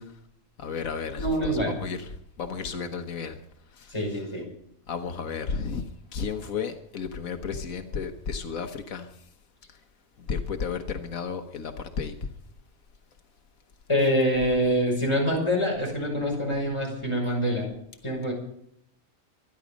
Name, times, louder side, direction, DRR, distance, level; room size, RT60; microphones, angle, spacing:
voice 1, 0.6-3.4 3.7-4.0 4.9-5.8 6.1-9.3 9.7-9.8 10.2-12.3, left 5 dB, 85° left, 1.5 m, -33 dB
voice 2, 1.2-1.7 3.9-4.5 13.9-17.7 18.0-18.3, equal, 20° left, 6.0 m, -25 dB
24.5 x 10.5 x 5.2 m
omnidirectional pair, 1.4 m